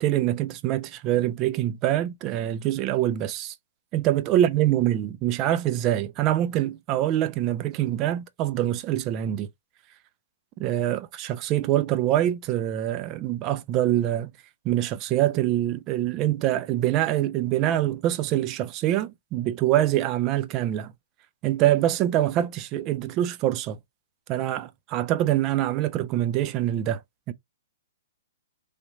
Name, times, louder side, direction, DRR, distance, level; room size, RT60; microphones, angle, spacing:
voice 1, 0.0-3.5 3.9-9.5 10.6-14.3 14.6-20.9 21.4-23.8 24.3-27.0 27.3-27.4, right 13 dB, 25° right, 0.4 m, -25 dB
3.2 x 2.9 x 2.6 m
hypercardioid pair, 165°, 0 cm